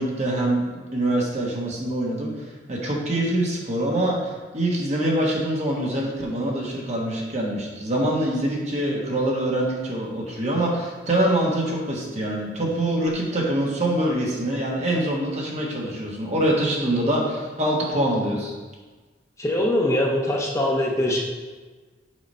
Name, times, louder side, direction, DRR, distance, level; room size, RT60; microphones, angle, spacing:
voice 1, 0.0-18.5, right 1 dB, 40° right, -2 dB, 1.5 m, -24 dB
voice 2, 19.4-21.2, left 1 dB, 15° left, -3 dB, 0.9 m, -22 dB
6.4 x 5.0 x 5.5 m, 1.3 s
head